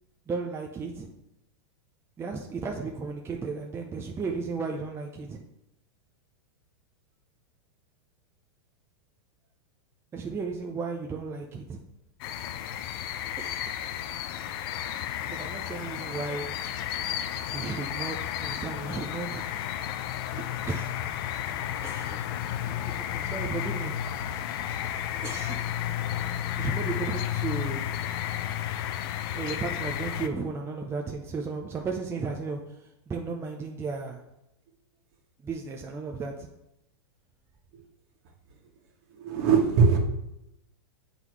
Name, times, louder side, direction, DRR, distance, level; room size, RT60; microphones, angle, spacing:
voice 1, 0.3-1.1 2.2-5.4 10.1-11.8 13.4-13.7 15.3-16.5 17.5-19.4 20.3-20.9 21.8-22.2 22.6-23.9 25.2-25.6 26.5-27.8 29.3-32.6 33.1-34.2 35.4-36.5, right 4 dB, 15° right, 1 dB, 0.6 m, -34 dB
sound 1, 12.2-30.3, left 10 dB, 55° left, 0.6 m, -32 dB
voice 2, 39.2-40.0, right 5 dB, 50° right, 2 dB, 1.6 m, -20 dB
7.9 x 3.9 x 4.7 m, 0.85 s
hypercardioid pair, 120°, 14 cm